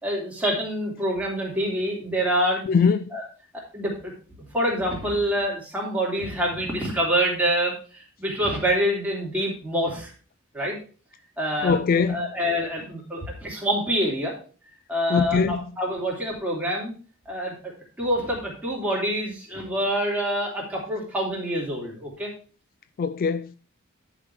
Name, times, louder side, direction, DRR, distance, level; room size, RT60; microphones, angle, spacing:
voice 1, 0.0-2.6 3.1-3.2 3.5-4.1 4.5-10.1 10.5-10.8 11.4-11.8 12.1-14.3 14.9-16.9 17.2-22.3, equal, 5° right, 3.2 m, -26 dB
voice 2, 2.7-3.1 11.6-12.3 15.1-15.6 23.0-23.6, left 5 dB, 40° left, 0.3 m, -22 dB
11.0 x 5.1 x 4.9 m
head